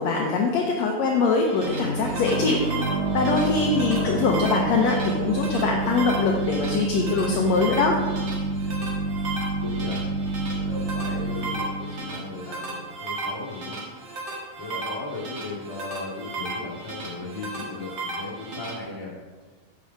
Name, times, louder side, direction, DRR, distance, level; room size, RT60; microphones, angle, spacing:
voice 1, 0.0-2.6 3.1-8.0, left 4 dB, 75° left, 1 dB, 1.6 m, -23 dB
sound 1, 1.2-18.7, right 2 dB, 45° right, 1.7 m, -35 dB
sound 2, 1.6-13.1, right 2 dB, 85° right, 2.7 m, -28 dB
voice 2, 3.7-4.2 9.6-10.1 10.5-13.8 14.6-19.1, left 3 dB, 10° left, -4 dB, 1.8 m, -37 dB
9.7 x 7.3 x 4.6 m, 1.3 s
omnidirectional pair, 4.0 m